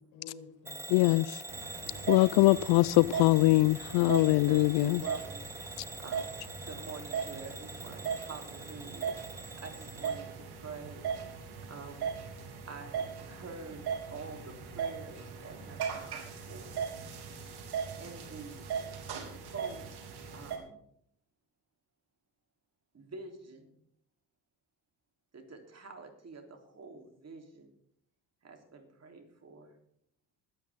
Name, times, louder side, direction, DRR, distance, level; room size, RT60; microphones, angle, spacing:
voice 1, 0.1-2.8, left 5 dB, 80° left, 7.0 m, -53 dB
Bell / Alarm, 0.7-10.2, right 2 dB, 5° right, 0.4 m, -45 dB
voice 2, 0.9-1.4 2.1-5.0, left 19 dB, 65° left, 0.5 m, -23 dB
sound 1, 1.5-20.6, right 6 dB, 60° right, 2.7 m, -39 dB
voice 3, 4.5-5.7 6.0-6.4 6.7-11.1 11.7-12.1 12.7-16.8 18.0-18.7 19.4-19.9 20.3-20.8 22.9-23.7 25.3-27.7 28.4-29.7, right 4 dB, 35° right, 3.4 m, -47 dB
20.5 x 9.2 x 3.6 m
hypercardioid pair, 65°, 43 cm